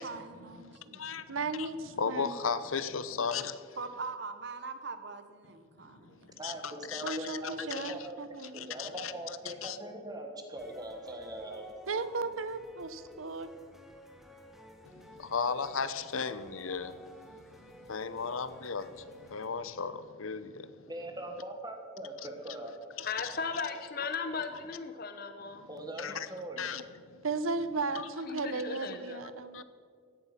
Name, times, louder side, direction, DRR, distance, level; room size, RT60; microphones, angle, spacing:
voice 1, 0.0-1.0 3.8-6.4, right 4 dB, 55° right, 9 dB, 1.2 m, -42 dB
voice 2, 0.6-1.7 2.0-3.7 5.9-6.1 6.4-7.4 7.7-7.9 8.5-9.1 9.6-9.8 14.9-20.8 23.0-23.3 26.0-26.3 26.6-27.2 27.9-28.1 29.5-29.6, left 5 dB, 80° left, 13 dB, 0.8 m, -36 dB
voice 3, 1.3-2.4 7.0-8.7 11.9-13.5 27.2-29.6, right 3 dB, 80° right, 13 dB, 0.9 m, -35 dB
voice 4, 6.4-8.2 8.5-11.7 20.9-22.8 25.7-26.6, right 1 dB, 20° right, 4 dB, 1.5 m, -41 dB
sound 1, 10.6-19.5, equal, ahead, 1.1 m, -54 dB
voice 5, 23.0-25.6 28.2-29.2, left 5 dB, 45° left, 8 dB, 0.8 m, -37 dB
16.5 x 11.0 x 5.9 m, 2.1 s
head